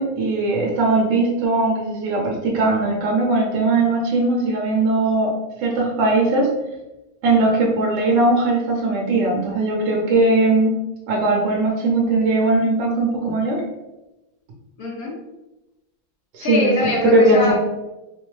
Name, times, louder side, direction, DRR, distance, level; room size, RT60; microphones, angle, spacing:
voice 1, 0.0-5.3 5.6-6.5 7.2-10.7 11.1-13.6 16.3-17.6, right 2 dB, 70° right, -2 dB, 1.4 m, -19 dB
voice 2, 14.8-15.2 16.4-17.6, left 1 dB, 55° left, -2 dB, 1.2 m, -23 dB
4.1 x 2.1 x 3.1 m, 0.98 s
omnidirectional pair, 2.2 m